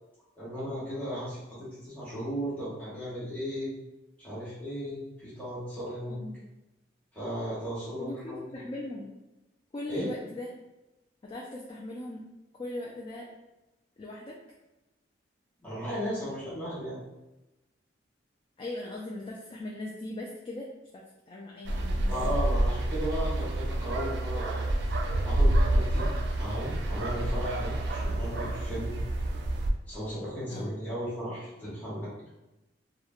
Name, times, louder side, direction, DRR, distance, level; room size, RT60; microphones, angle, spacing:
voice 1, 0.4-3.7 4.2-6.2 7.1-8.6 9.9-10.1 15.6-17.0 22.1-24.7 25.2-26.1 26.4-28.9 29.9-32.1, equal, 10° left, -11 dB, 0.9 m, -35 dB
voice 2, 6.1-6.5 8.0-9.1 9.7-10.5 11.2-12.2 12.6-13.3 14.0-14.4 18.6-20.7 20.9-22.4 30.5-30.8, left 2 dB, 30° left, -3 dB, 0.3 m, -39 dB
sound 1, 21.7-29.7, right 1 dB, 65° right, 0.3 m, -28 dB
3.0 x 2.1 x 2.4 m, 0.99 s
head